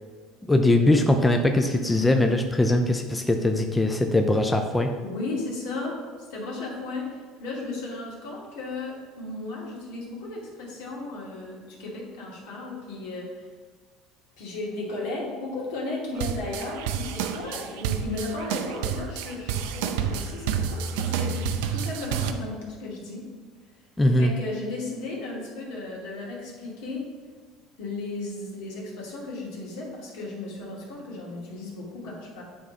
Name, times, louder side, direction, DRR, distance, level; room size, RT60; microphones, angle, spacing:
voice 1, 0.5-4.9 24.0-24.3, left 1 dB, 10° left, 4 dB, 0.5 m, -21 dB
voice 2, 5.0-6.0 6.3-13.5 14.4-21.5 21.7-23.2 24.1-27.0 27.8-32.4, left 2 dB, 80° left, -3 dB, 2.3 m, -35 dB
sound 1, 16.2-22.3, right 7 dB, 85° right, 0.5 m, -29 dB
8.9 x 3.6 x 5.1 m, 1.5 s
cardioid pair, 135°, 0 cm